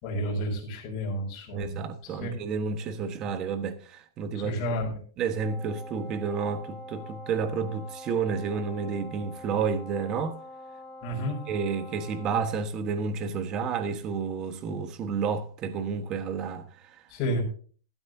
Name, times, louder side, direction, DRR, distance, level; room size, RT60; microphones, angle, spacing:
voice 1, 0.0-2.3 4.4-4.9 11.0-11.4 17.1-17.4, equal, 30° left, 6.1 m, -31 dB
voice 2, 1.5-4.6 5.2-10.4 11.5-17.0, right 5 dB, 25° right, 1.3 m, -30 dB
Wind instrument woodwind instrument, 5.3-12.6, left 2 dB, 5° left, 4.0 m, -45 dB
16.0 x 12.5 x 2.7 m
supercardioid pair, 155°, 2 cm